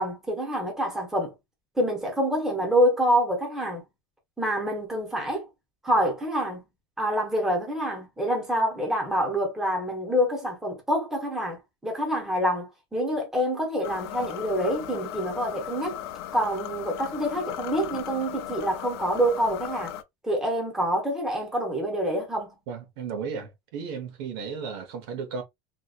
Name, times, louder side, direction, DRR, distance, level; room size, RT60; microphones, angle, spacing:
voice 1, 0.0-1.3 1.8-3.9 4.4-5.5 5.8-6.7 7.0-16.0 16.3-19.9 20.2-22.6, equal, 5° right, 0.8 m, -26 dB
sound 1, 13.8-20.0, left 11 dB, 90° left, 0.5 m, -37 dB
voice 2, 22.7-25.4, right 6 dB, 70° right, 1.0 m, -34 dB
2.9 x 2.8 x 2.3 m
cardioid pair, 175°, 13 cm